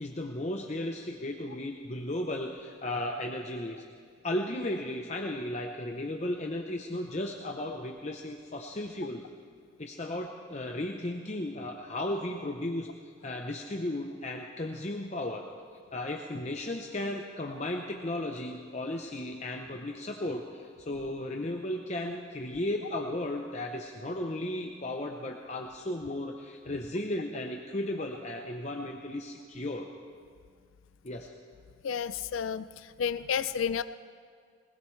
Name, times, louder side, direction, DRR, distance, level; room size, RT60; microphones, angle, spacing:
voice 1, 0.0-3.8 4.2-9.2 9.8-12.9 13.2-15.4 15.9-29.9 31.0-31.3, left 1 dB, 35° left, 2 dB, 0.8 m, -35 dB
voice 2, 31.8-33.8, left 7 dB, 80° left, 14 dB, 0.4 m, -31 dB
20.5 x 20.0 x 3.3 m, 2.1 s
head